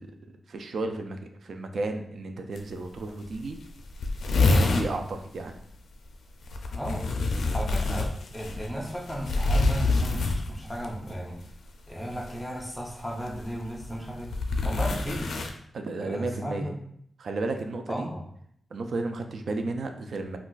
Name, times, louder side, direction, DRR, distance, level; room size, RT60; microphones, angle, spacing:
voice 1, 0.0-3.6 4.4-5.5 15.7-16.7 17.2-18.1 18.7-20.4, right 3 dB, 60° right, 6 dB, 0.3 m, -33 dB
sound 1, 2.6-2.7 2.9-3.0 3.3-3.4 3.6-4.9 6.4-10.9 12.1-12.4 13.3-15.5, left 3 dB, 90° left, 0.4 m, -26 dB
voice 2, 6.7-7.1 7.5-11.4 11.9-14.3 14.6-15.3 16.0-16.8 17.9-18.3, equal, 5° left, -2 dB, 0.5 m, -35 dB
2.4 x 2.3 x 3.8 m, 0.69 s
wide cardioid pair, 160°, 0 cm